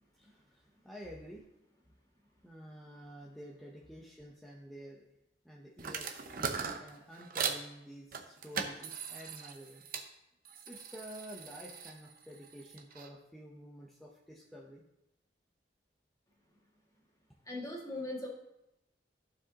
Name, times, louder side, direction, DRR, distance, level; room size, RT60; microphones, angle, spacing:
voice 1, 0.1-1.4 2.4-5.1 5.4-9.9 10.7-14.8, equal, ahead, -4 dB, 0.7 m, -50 dB
sound 1, 5.8-7.6 8.1-10.1 10.4-13.1, right 6 dB, 50° right, 0.8 m, -40 dB
voice 2, 17.4-18.3, left 1 dB, 20° left, -2 dB, 1.8 m, -40 dB
14.0 x 4.9 x 2.8 m, 0.88 s
head